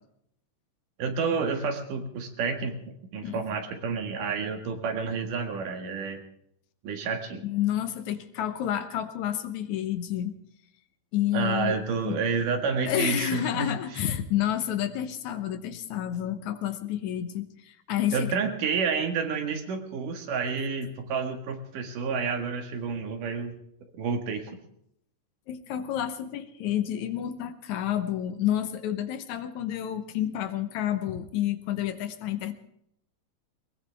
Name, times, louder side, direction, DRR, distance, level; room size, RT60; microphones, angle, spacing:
voice 1, 1.0-6.2 6.8-7.4 11.3-14.0 18.1-23.5 23.9-24.5, right 5 dB, 75° right, 5 dB, 3.3 m, -30 dB
voice 2, 7.4-10.3 11.1-11.8 12.0-12.2 12.9-18.3 25.5-32.5, left 11 dB, 70° left, 10 dB, 2.2 m, -29 dB
20.5 x 20.0 x 3.5 m, 0.72 s
omnidirectional pair, 3.8 m